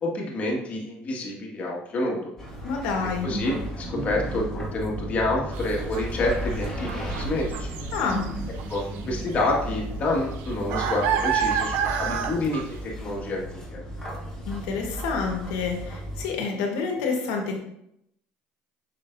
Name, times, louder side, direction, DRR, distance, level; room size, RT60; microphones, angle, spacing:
voice 1, 0.0-2.3 3.2-7.7 8.7-13.8, left 2 dB, 40° left, -2 dB, 1.8 m, -28 dB
sound 1, 2.4-16.3, right 1 dB, 15° left, 1.9 m, -34 dB
voice 2, 2.6-3.3 7.9-8.3 14.5-17.6, left 5 dB, 85° left, 2 dB, 1.4 m, -28 dB
sound 2, 5.5-5.6 5.9-8.3 8.6-9.0 9.3-9.4 9.8-12.8, right 8 dB, 75° right, 0.7 m, -28 dB
6.8 x 5.3 x 2.6 m, 0.77 s
supercardioid pair, 110°, 4 cm